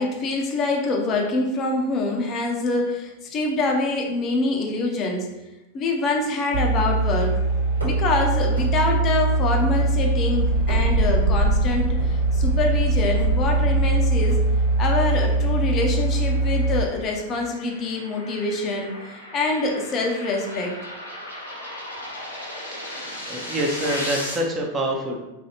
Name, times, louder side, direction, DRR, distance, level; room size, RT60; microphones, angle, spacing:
voice 1, 0.0-5.3 5.7-7.3 7.8-14.4 14.8-19.0 19.3-20.7, left 3 dB, 30° left, 1 dB, 0.5 m, -25 dB
sound 1, 6.5-16.8, right 2 dB, 65° right, 1.1 m, -21 dB
sound 2, 7.7-8.2 8.6-9.0 9.7-10.2 10.5-11.2 12.0-12.3 13.2-13.5 14.3-14.6, equal, 85° right, 0.8 m, -37 dB
sound 3, 15.5-24.4, left 1 dB, 80° left, 0.9 m, -36 dB
voice 2, 22.7-25.2, right 1 dB, 20° right, 0 dB, 0.5 m, -27 dB
3.1 x 2.5 x 2.8 m, 1.0 s
figure-of-eight pair, 90°, 0 cm